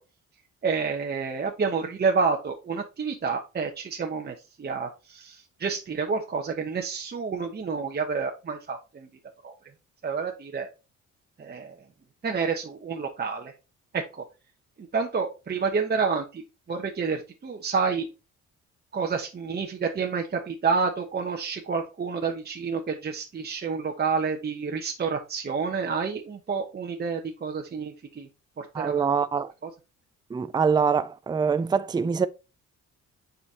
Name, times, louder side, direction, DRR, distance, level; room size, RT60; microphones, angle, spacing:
voice 1, 0.6-9.1 9.4-9.5 10.0-10.7 11.4-11.7 12.2-13.5 13.9-14.2 14.9-16.4 16.7-18.1 18.9-28.3 28.6-29.1, right 5 dB, 35° right, 1.0 m, -29 dB
voice 2, 28.7-29.5 30.3-32.3, right 6 dB, 15° right, 0.4 m, -24 dB
7.1 x 5.2 x 2.8 m
cardioid pair, 90°, 30 cm